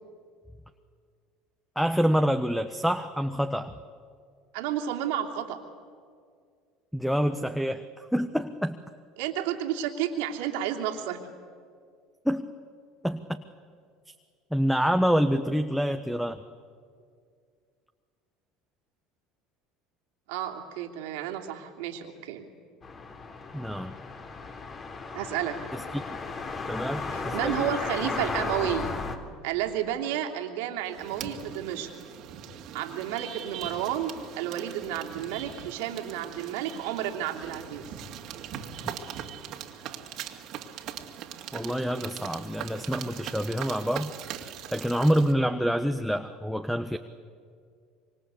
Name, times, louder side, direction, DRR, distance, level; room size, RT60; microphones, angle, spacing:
voice 1, 1.8-3.7 6.9-8.8 12.2-12.5 13.0-13.4 14.5-16.4 23.5-23.9 25.7-26.0 26.7-27.6 38.8-39.0 41.5-47.0, equal, ahead, 9 dB, 1.2 m, -27 dB
voice 2, 4.5-5.6 9.2-11.2 20.3-22.5 25.1-25.6 27.1-28.9 29.4-31.9 32.7-37.8, right 10 dB, 75° right, 2 dB, 3.0 m, -31 dB
sound 1, 22.8-29.2, left 4 dB, 35° left, 3.3 m, -35 dB
sound 2, 30.9-45.3, right 9 dB, 60° right, 2.4 m, -41 dB
25.5 x 25.5 x 8.3 m, 2.1 s
hypercardioid pair, 80°, 0 cm